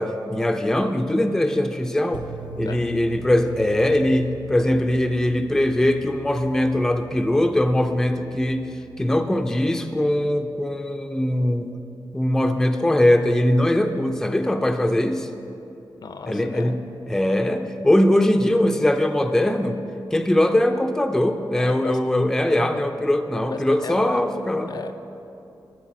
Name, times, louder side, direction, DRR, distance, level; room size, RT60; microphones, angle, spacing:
voice 1, 0.0-2.3 2.6-11.7 12.1-15.3 16.3-16.8 17.1-19.8 20.1-24.7, left 1 dB, 5° left, 6 dB, 0.4 m, -21 dB
sound 1, 2.1-10.3, right 2 dB, 70° right, 0.6 m, -42 dB
voice 2, 16.0-16.8 21.6-22.0 22.5-22.9 23.5-24.2 24.7-24.9, left 4 dB, 60° left, 9 dB, 0.5 m, -34 dB
12.5 x 4.6 x 6.0 m, 2.8 s
wide cardioid pair, 120°, 8 cm